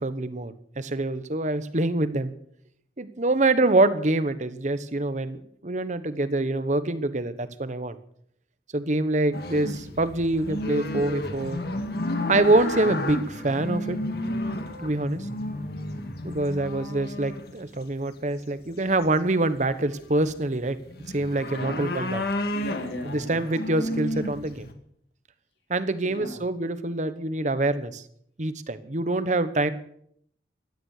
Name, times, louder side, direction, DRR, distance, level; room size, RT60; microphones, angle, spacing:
voice 1, 0.0-2.3 3.0-7.9 8.7-11.6 12.3-14.0 14.8-15.3 16.2-20.8 21.1-22.2 23.0-24.7 25.7-28.0 28.4-29.7, right 2 dB, 45° right, 12 dB, 1.1 m, -25 dB
sound 1, 9.3-17.6 18.6-19.2 19.6-24.7, left 1 dB, 60° left, 1.9 m, -32 dB
voice 2, 21.5-21.9 22.5-23.5 26.0-26.4, left 1 dB, 85° left, 2 dB, 3.9 m, -37 dB
16.0 x 12.0 x 6.6 m, 0.69 s
head